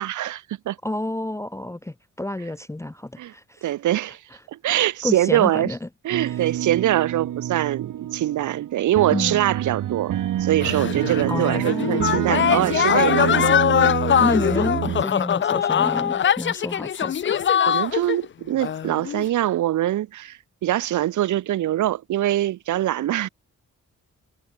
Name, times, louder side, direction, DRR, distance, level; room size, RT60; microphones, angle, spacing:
voice 1, 0.0-0.8 3.2-3.3 3.6-4.2 4.5-5.7 6.0-13.5 17.7-23.3, right 13 dB, 75° right, 0.5 m, -23 dB
voice 2, 0.8-3.7 4.7-5.9 6.2-6.4 9.1-9.4 11.3-12.8 14.2-17.2, left 1 dB, 10° left, 0.7 m, -30 dB
sound 1, 6.1-15.0, right 11 dB, 90° right, 0.9 m, -27 dB
sound 2, 10.6-18.3 18.6-19.2, left 9 dB, 40° left, 0.4 m, -22 dB
cardioid pair, 95°, 31 cm